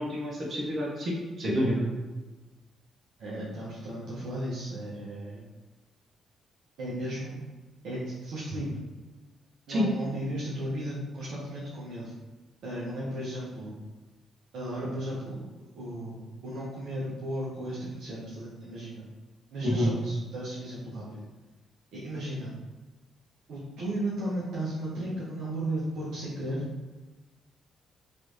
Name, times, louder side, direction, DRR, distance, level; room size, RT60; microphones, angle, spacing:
voice 1, 0.0-1.8 9.7-9.8 19.6-19.9, equal, 50° right, -3 dB, 1.1 m, -28 dB
voice 2, 3.2-5.4 6.8-7.4 7.8-8.8 9.7-12.1 12.6-13.7 14.5-15.4 15.8-19.0 19.5-21.2 21.9-22.5 23.5-26.6, right 1 dB, 70° right, -7 dB, 0.8 m, -35 dB
3.2 x 3.0 x 2.7 m, 1.2 s
hypercardioid pair, 50°, 0 cm